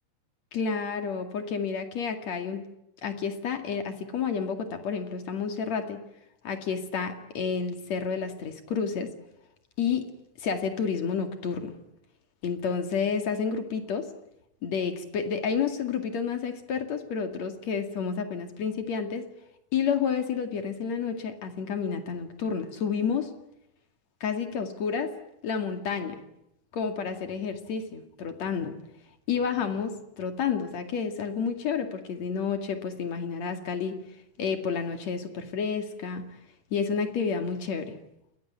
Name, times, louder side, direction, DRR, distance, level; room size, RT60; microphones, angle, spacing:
voice 1, 0.5-2.6 3.0-6.0 6.4-9.1 9.8-10.0 10.4-11.7 12.4-14.1 14.6-19.3 19.7-23.3 24.2-25.1 25.4-26.2 26.7-28.7 29.3-34.0 34.4-36.2 36.7-38.0, left 6 dB, 45° left, 7 dB, 2.8 m, -30 dB
28.5 x 21.0 x 9.6 m, 0.82 s
omnidirectional pair, 5.2 m